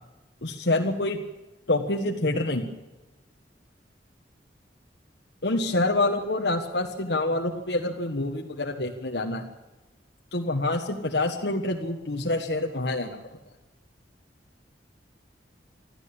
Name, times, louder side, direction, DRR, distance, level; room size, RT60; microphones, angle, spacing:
voice 1, 0.4-1.2 1.7-2.7 5.4-9.4 10.3-13.2, left 2 dB, 70° left, 1 dB, 1.6 m, -26 dB
25.5 x 13.5 x 8.8 m, 1.1 s
head